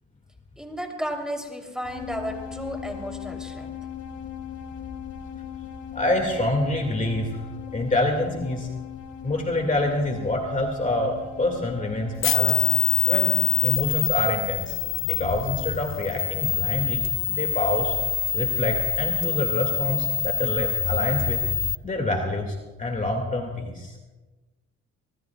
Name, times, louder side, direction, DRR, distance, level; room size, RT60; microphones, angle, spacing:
voice 1, 0.6-3.8, equal, ahead, 2 dB, 3.1 m, -33 dB
sound 1, 1.8-13.8, left 9 dB, 75° left, 2.0 m, -39 dB
voice 2, 5.9-7.4 7.7-8.7 9.2-12.7 13.1-13.3 13.6-14.8 15.0-17.9 18.3-21.4 21.8-23.9, left 1 dB, 25° left, 2 dB, 2.1 m, -27 dB
sound 2, 12.2-21.8, left 9 dB, 45° left, 0.5 m, -25 dB
25.0 x 19.5 x 2.3 m, 1.2 s
cardioid pair, 90°, 30 cm